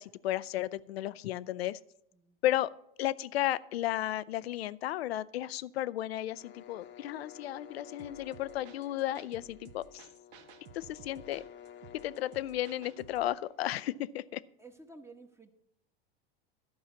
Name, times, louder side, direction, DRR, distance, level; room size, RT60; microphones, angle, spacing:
voice 1, 0.0-1.8 2.4-2.7 3.0-10.1 10.7-11.4 12.0-14.4, left 14 dB, 85° left, 18 dB, 0.5 m, -34 dB
sound 1, 6.3-14.1, left 9 dB, 35° left, 0.9 m, -53 dB
sound 2, 8.0-13.3, right 7 dB, 60° right, 1.0 m, -55 dB
voice 2, 14.6-15.5, right 3 dB, 10° right, 6 dB, 1.1 m, -52 dB
11.5 x 5.7 x 6.9 m, 0.76 s
hypercardioid pair, 100°, 30 cm